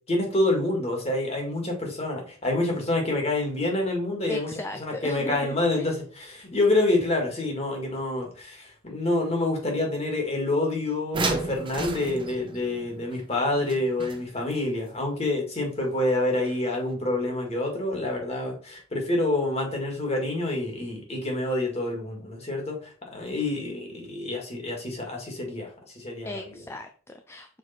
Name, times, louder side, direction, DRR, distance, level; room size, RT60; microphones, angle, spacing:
voice 1, 0.1-4.5 4.8-25.7 26.0-26.6, left 2 dB, 30° left, 1 dB, 2.1 m, -27 dB
voice 2, 4.3-5.4 5.8-5.9 26.2-27.6, left 1 dB, 10° left, 5 dB, 0.4 m, -37 dB
sound 1, 11.1-14.6 16.5-16.6 16.9-17.0, right 3 dB, 25° right, 0.9 m, -32 dB
6.6 x 4.6 x 4.4 m, 0.41 s
head